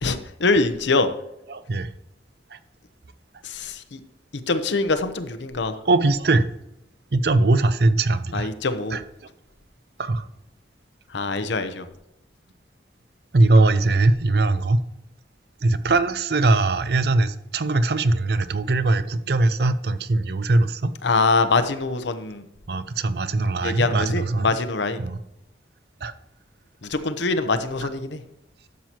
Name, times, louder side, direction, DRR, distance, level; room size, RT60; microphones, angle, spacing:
voice 1, 0.0-1.1 3.4-4.0 4.5-5.8 8.3-9.0 11.1-11.9 21.0-22.4 23.6-25.0 26.8-28.2, left 3 dB, 75° left, 10 dB, 0.7 m, -24 dB
voice 2, 1.5-1.9 2.5-2.6 5.9-6.5 7.1-8.5 8.9-9.0 10.0-10.3 13.3-14.8 15.6-20.9 22.7-24.5 25.0-25.2 26.0-26.1, right 2 dB, 55° right, 13 dB, 0.5 m, -21 dB
12.0 x 7.5 x 2.9 m, 0.86 s
head